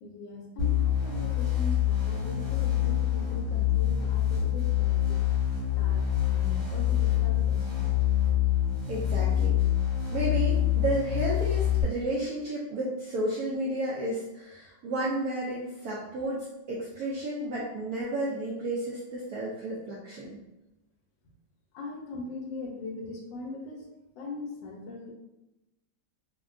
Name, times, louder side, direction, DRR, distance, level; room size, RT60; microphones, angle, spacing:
voice 1, 0.0-5.3 5.8-7.9 21.7-23.9 24.2-25.1, left 2 dB, 75° left, 0 dB, 1.3 m, -40 dB
sound 1, 0.6-11.8, left 11 dB, 35° right, 1.5 m, -26 dB
voice 2, 8.9-9.5 10.1-20.4, right 1 dB, 75° right, -6 dB, 0.8 m, -32 dB
3.6 x 2.2 x 2.4 m, 0.97 s
omnidirectional pair, 2.1 m